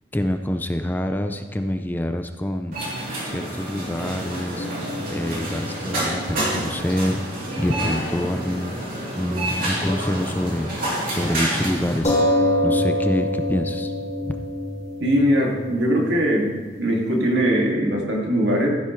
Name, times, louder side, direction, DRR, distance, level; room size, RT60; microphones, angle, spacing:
voice 1, 0.1-2.8 3.3-4.7 5.1-7.2 7.6-8.8 9.1-12.2 12.6-13.9 14.2-14.4, left 1 dB, 10° left, 7 dB, 0.4 m, -26 dB
sound 1, 2.7-12.0, right 1 dB, 50° right, 3.2 m, -28 dB
sound 2, 4.6-8.5 8.7-8.8 12.0-17.3, left 1 dB, 35° left, 2.3 m, -27 dB
voice 2, 15.0-16.5 16.8-18.7, equal, 70° right, -1 dB, 2.3 m, -20 dB
14.5 x 10.5 x 3.2 m, 1.4 s
head